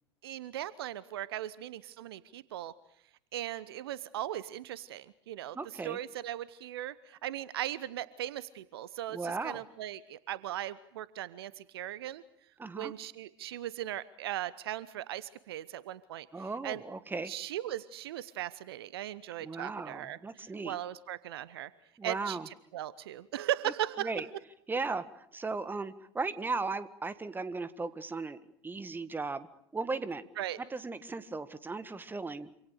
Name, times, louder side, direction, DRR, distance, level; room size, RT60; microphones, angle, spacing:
voice 1, 0.2-2.7 3.3-5.6 5.8-12.2 12.8-16.3 16.6-16.8 17.3-20.2 20.6-21.7 22.0-22.4 22.7-24.1 30.4-30.6, right 12 dB, 65° right, 18 dB, 1.0 m, -38 dB
voice 2, 5.5-6.0 9.1-9.6 12.6-12.9 16.3-17.3 19.4-20.8 22.0-22.5 24.0-24.3 24.7-29.5 29.7-30.2 30.7-32.5, right 3 dB, 15° right, 14 dB, 1.8 m, -36 dB
27.0 x 26.5 x 6.7 m, 0.71 s
figure-of-eight pair, 75°, 14 cm